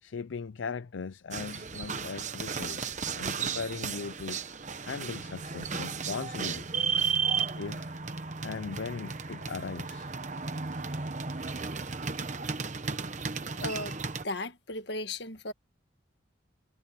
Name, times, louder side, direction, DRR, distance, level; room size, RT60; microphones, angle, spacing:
voice 1, 0.0-4.4 4.8-6.7 7.6-8.0 8.4-10.1, left 5 dB, 75° left, 0.5 m, -38 dB
sound 1, 1.3-14.2, right 5 dB, 40° right, 1.0 m, -34 dB
voice 2, 13.5-15.5, left 2 dB, 60° left, 1.6 m, -36 dB
head